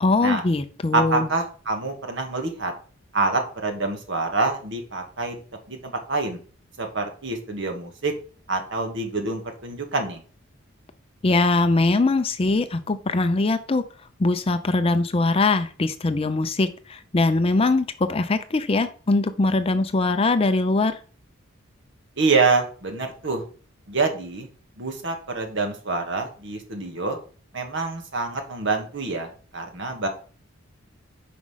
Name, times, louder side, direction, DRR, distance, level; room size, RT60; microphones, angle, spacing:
voice 1, 0.0-1.3 11.2-13.8 14.2-21.0, left 3 dB, 25° left, 10 dB, 0.4 m, -22 dB
voice 2, 0.9-2.7 3.1-5.4 5.7-6.4 6.8-8.1 8.5-10.2 22.2-23.4 23.9-24.5 24.8-27.2 27.5-30.1, right 3 dB, 60° right, 4 dB, 1.4 m, -26 dB
5.1 x 4.8 x 5.6 m, 0.40 s
head